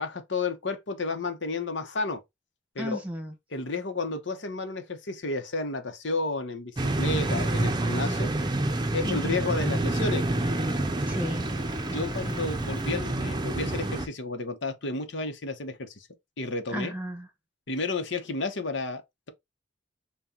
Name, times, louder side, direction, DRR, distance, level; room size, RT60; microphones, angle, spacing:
voice 1, 0.0-2.2 2.7-3.0 3.5-8.3 8.9-10.3 11.8-16.1 16.4-16.9 17.7-19.0, left 3 dB, 70° left, 0.9 m, -32 dB
voice 2, 2.8-3.3 9.0-9.6 11.1-11.5 16.7-17.3, equal, 10° right, 1.2 m, -34 dB
sound 1, 6.8-14.1, right 2 dB, 25° right, 0.6 m, -28 dB
4.2 x 2.3 x 3.7 m
head